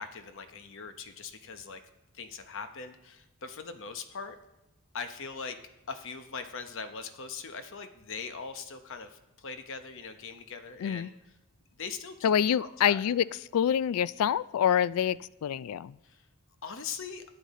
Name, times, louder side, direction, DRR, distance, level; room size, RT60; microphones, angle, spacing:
voice 1, 0.0-1.8 2.1-4.4 4.9-5.6 5.9-11.1 11.8-13.0 16.0-16.2 16.6-17.2, left 5 dB, 60° left, 8 dB, 0.9 m, -41 dB
voice 2, 12.2-13.3 13.5-16.0, left 8 dB, 75° left, 19 dB, 0.3 m, -26 dB
15.0 x 10.0 x 4.2 m, 0.96 s
head